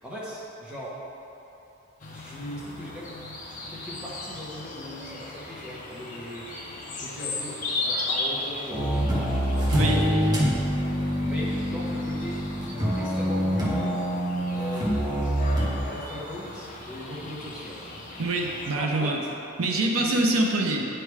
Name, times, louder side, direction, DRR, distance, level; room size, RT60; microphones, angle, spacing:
voice 1, 0.0-1.0 2.1-3.1 3.7-6.5 7.0-7.5 7.8-9.3 9.5-10.4 11.2-14.0 14.5-15.3 15.9-17.8 18.7-19.3 20.0-20.2, equal, 5° right, -8 dB, 1.2 m, -38 dB
sound 1, 2.0-18.7, left 2 dB, 40° left, 0.8 m, -37 dB
sound 2, 8.7-15.8, equal, 20° right, 0.9 m, -25 dB
voice 2, 9.7-10.0 18.2-19.2 19.6-20.9, right 2 dB, 85° right, 0 dB, 0.7 m, -25 dB
9.1 x 3.4 x 4.7 m, 2.9 s
head